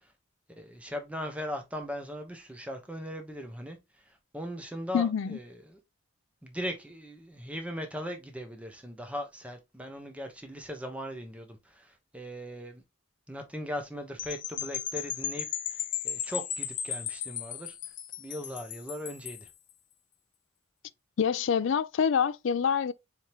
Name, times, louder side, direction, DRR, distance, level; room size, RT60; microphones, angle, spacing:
voice 1, 0.5-3.8 4.1-5.8 6.4-12.8 13.3-15.8 16.0-17.7 18.2-19.5, equal, 5° right, 0.9 m, -39 dB
voice 2, 4.9-5.4 21.2-22.9, left 7 dB, 70° left, 0.4 m, -26 dB
sound 1, 14.2-19.5, left 9 dB, 40° left, 0.7 m, -36 dB
4.5 x 3.6 x 2.9 m
head